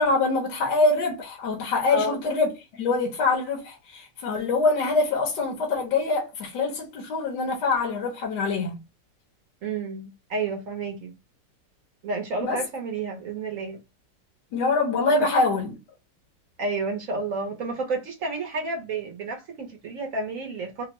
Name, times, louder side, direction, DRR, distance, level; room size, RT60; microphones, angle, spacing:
voice 1, 0.0-8.8 12.4-12.6 14.5-15.8, left 3 dB, 75° left, 1.4 m, -24 dB
voice 2, 1.9-2.2 9.6-11.1 12.0-13.8 16.6-20.8, right 3 dB, 60° right, 0.9 m, -30 dB
3.5 x 2.1 x 3.0 m
omnidirectional pair, 1.9 m